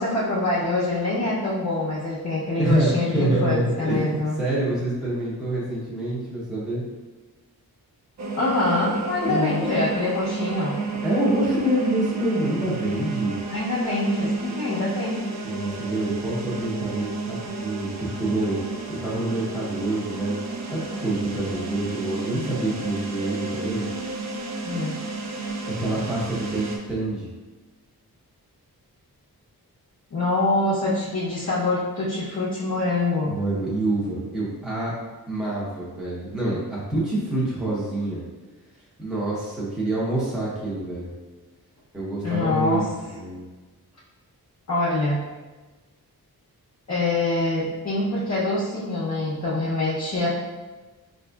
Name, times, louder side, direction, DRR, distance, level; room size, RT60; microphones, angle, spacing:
voice 1, 0.0-4.4 8.3-10.8 13.5-15.2 24.6-24.9 30.1-33.4 42.2-42.9 44.7-45.2 46.9-50.3, left 2 dB, 45° left, -7 dB, 0.7 m, -25 dB
voice 2, 2.6-6.8 9.3-9.7 11.0-13.4 15.4-18.6 19.0-20.4 20.7-23.9 25.6-27.3 33.2-34.9 35.3-38.3 39.0-41.1 41.9-42.9 43.1-43.4, right 1 dB, ahead, -7 dB, 0.8 m, -26 dB
sound 1, 8.2-26.8, right 3 dB, 45° right, 0.4 m, -31 dB
4.7 x 2.6 x 2.3 m, 1.2 s
wide cardioid pair, 125°, 38 cm